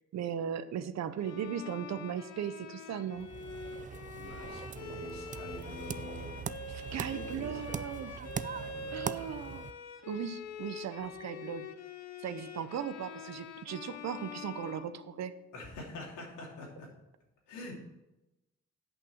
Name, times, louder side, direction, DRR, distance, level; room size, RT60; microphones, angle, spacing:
voice 1, 0.1-3.3 6.7-8.3 8.9-9.7 10.1-11.7 12.2-15.3, right 8 dB, 60° right, 13 dB, 0.8 m, -37 dB
Bowed string instrument, 1.2-15.5, left 4 dB, 60° left, 1.0 m, -45 dB
sound 1, 3.2-9.7, right 7 dB, 25° right, 0.4 m, -41 dB
voice 2, 4.1-6.5 6.9-7.8 8.5-9.5 11.0-11.1 15.5-16.9 17.5-17.8, left 1 dB, 85° left, -2 dB, 3.0 m, -46 dB
8.5 x 5.8 x 7.0 m, 0.97 s
cardioid pair, 90°, 30 cm